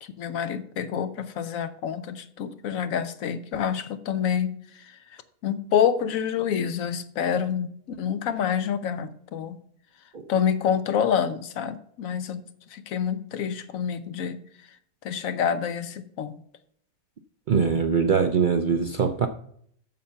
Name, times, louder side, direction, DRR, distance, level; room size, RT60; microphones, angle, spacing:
voice 1, 0.0-5.0 5.4-9.6 10.3-12.4 12.7-14.4 15.0-16.3, left 8 dB, 75° left, 1.1 m, -27 dB
voice 2, 17.5-19.3, right 6 dB, 60° right, 0.5 m, -22 dB
7.5 x 6.9 x 5.6 m
omnidirectional pair, 1.4 m